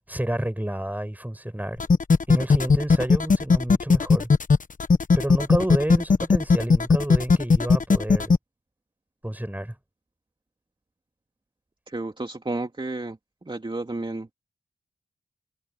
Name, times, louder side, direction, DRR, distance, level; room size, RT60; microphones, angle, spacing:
voice 1, 0.1-1.8 2.3-4.3 5.2-8.3 9.2-9.8, right 1 dB, 10° right, 8.0 m, -29 dB
sound 1, 1.8-8.4, left 4 dB, 50° left, 1.2 m, -18 dB
voice 2, 11.9-13.2 13.5-14.3, right 2 dB, 30° right, 2.4 m, -31 dB
cardioid pair, 45°, 17 cm